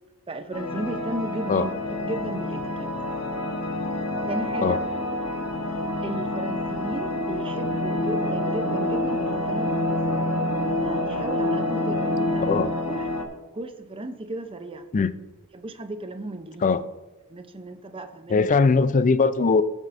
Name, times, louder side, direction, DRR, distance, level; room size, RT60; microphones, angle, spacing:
voice 1, 0.3-2.9 4.3-4.8 6.0-10.0 10.8-13.1 13.5-14.9 15.5-16.7 17.3-18.5, right 1 dB, 25° right, 9 dB, 0.6 m, -35 dB
sound 1, 0.5-13.2, left 1 dB, 90° left, 1.1 m, -27 dB
voice 2, 18.3-19.6, left 4 dB, 35° left, 13 dB, 0.4 m, -20 dB
16.5 x 7.3 x 2.6 m, 1.1 s
head